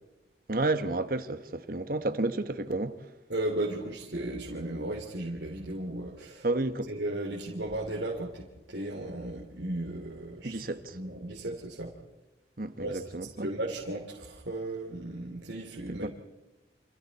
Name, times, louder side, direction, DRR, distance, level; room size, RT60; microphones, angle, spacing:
voice 1, 0.5-3.1 6.4-6.9 10.4-11.0 12.6-13.5 15.9-16.1, right 2 dB, 50° right, 1.2 m, -31 dB
voice 2, 3.3-6.5 6.9-10.6 10.9-11.9 12.8-13.0 13.4-16.1, right 1 dB, 75° right, 3.0 m, -35 dB
29.0 x 27.5 x 4.2 m
head